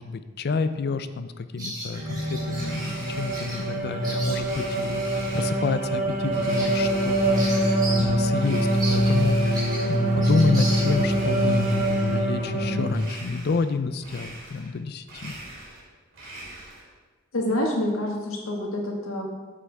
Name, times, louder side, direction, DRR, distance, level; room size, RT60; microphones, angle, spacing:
voice 1, 0.0-11.7 12.1-15.4, left 4 dB, 50° left, 11 dB, 0.4 m, -29 dB
Bird vocalization bird call bird song, 1.6-2.7 3.3-3.6 3.9-4.7 5.2-5.4 5.8-5.9 6.2-8.1 8.4-8.5 8.8-11.2, right 1 dB, 20° right, 2.8 m, -36 dB
sound 1, 2.0-12.9, right 1 dB, 35° right, 1.4 m, -24 dB
Domestic sounds home sounds, 2.5-3.8 4.3-5.8 6.3-7.9 8.3-10.1 10.5-12.3 12.9-13.7 14.0-14.8 15.0-16.9, right 1 dB, 65° right, 2.9 m, -41 dB
voice 2, 17.3-19.2, left 1 dB, 85° left, 0 dB, 1.7 m, -27 dB
8.4 x 7.6 x 3.4 m, 1.3 s
head